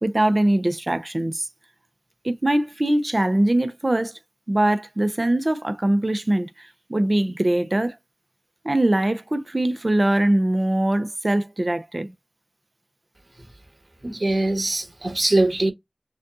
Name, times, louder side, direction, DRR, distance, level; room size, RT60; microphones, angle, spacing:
voice 1, 0.0-1.5 2.2-4.1 4.5-7.9 8.6-12.1, right 1 dB, 45° right, 0.8 m, -22 dB
voice 2, 14.0-15.7, right 2 dB, 60° right, 1.6 m, -22 dB
6.4 x 2.4 x 2.7 m
wide cardioid pair, 45°, 0 cm